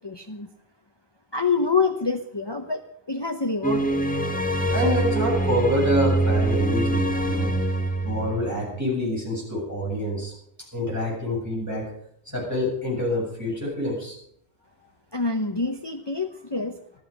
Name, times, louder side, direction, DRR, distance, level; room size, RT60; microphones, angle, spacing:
voice 1, 0.0-0.5 1.3-4.0 15.1-16.8, left 4 dB, 25° left, 5 dB, 0.9 m, -26 dB
sound 1, 3.6-8.8, right 1 dB, 10° left, 1.3 m, -24 dB
voice 2, 4.7-7.6 8.0-10.3 10.7-11.9 12.3-14.2, left 1 dB, 15° right, -4 dB, 7.6 m, -27 dB
14.5 x 13.5 x 5.2 m, 0.68 s
omnidirectional pair, 1.1 m